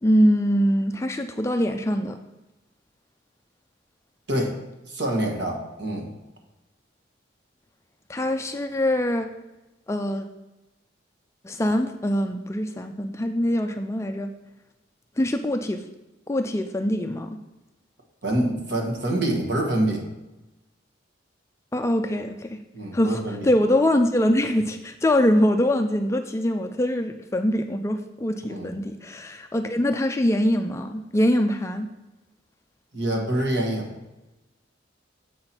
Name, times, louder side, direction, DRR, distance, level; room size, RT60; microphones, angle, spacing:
voice 1, 0.0-2.2 8.1-9.3 9.9-10.3 11.4-14.3 15.2-15.9 16.3-17.4 21.7-22.6 22.9-31.9, left 1 dB, 15° left, 6 dB, 0.3 m, -23 dB
voice 2, 4.3-4.6 4.9-6.1 18.2-20.1 22.7-23.5 28.5-28.7 32.9-33.9, right 1 dB, 60° right, 0 dB, 1.5 m, -26 dB
7.6 x 5.8 x 4.4 m, 1.0 s
head